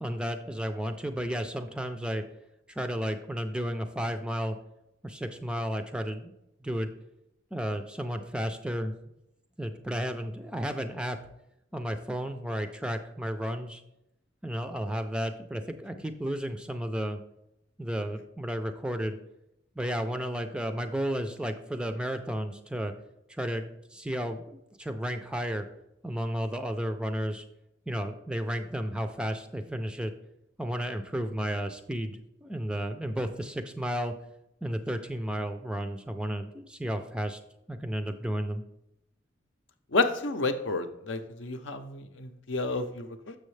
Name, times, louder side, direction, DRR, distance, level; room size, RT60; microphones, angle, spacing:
voice 1, 0.0-2.2 2.7-4.6 5.0-6.3 6.6-6.9 7.5-9.1 9.6-11.2 11.7-13.8 14.4-17.2 17.8-19.2 19.8-22.9 23.3-25.7 26.0-27.4 27.9-30.1 30.6-34.1 34.6-37.4 37.7-38.6, equal, 5° right, 7 dB, 0.4 m, -33 dB
voice 2, 39.9-43.3, left 3 dB, 70° left, 8 dB, 0.6 m, -30 dB
6.9 x 6.4 x 3.2 m, 0.84 s
head